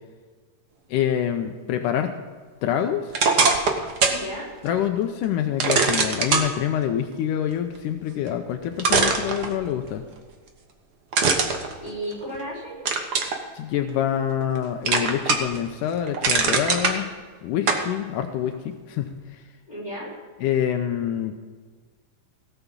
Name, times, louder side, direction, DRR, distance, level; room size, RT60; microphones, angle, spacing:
voice 1, 0.9-2.1 2.6-3.1 4.6-10.0 13.5-17.1 17.4-19.4 20.4-21.3, left 10 dB, 80° left, 6 dB, 2.2 m, -26 dB
sound 1, 3.1-4.2 4.7-4.8 5.6-6.5 8.3-8.4 8.8-9.9 11.1-12.4 12.9-13.4 13.9-14.6 14.9-15.6 15.9-17.0 17.7-17.9, right 4 dB, 65° right, 1.0 m, -21 dB
voice 2, 4.1-4.5 11.8-13.0 19.7-20.1, equal, 10° left, -6 dB, 5.0 m, -34 dB
17.0 x 7.1 x 7.1 m, 1.5 s
omnidirectional pair, 3.7 m